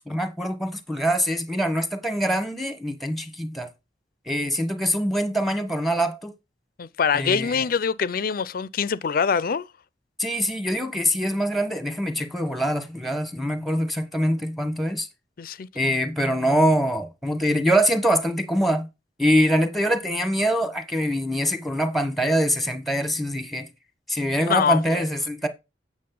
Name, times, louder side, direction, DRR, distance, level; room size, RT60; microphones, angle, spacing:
voice 1, 0.1-3.7 4.3-6.3 7.1-7.7 10.2-15.1 15.7-18.9 19.2-23.7 24.1-25.5, equal, ahead, 1.0 m, -24 dB
voice 2, 6.8-9.7 15.4-15.7 24.4-25.1, left 6 dB, 55° left, 0.4 m, -24 dB
8.5 x 6.2 x 3.8 m
head